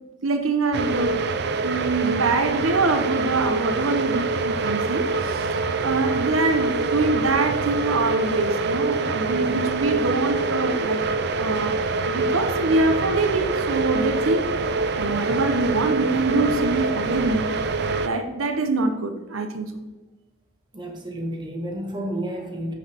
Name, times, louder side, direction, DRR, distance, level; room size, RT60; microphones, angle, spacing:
voice 1, 0.2-1.2 1.6-11.0 11.3-14.5 15.0-17.6 18.0-19.8, right 3 dB, 90° right, 7 dB, 0.8 m, -24 dB
sound 1, 0.7-18.1, right 3 dB, 55° right, 0.6 m, -25 dB
voice 2, 20.7-22.7, right 1 dB, 20° right, 1 dB, 1.4 m, -31 dB
9.4 x 6.7 x 3.5 m, 1.2 s
head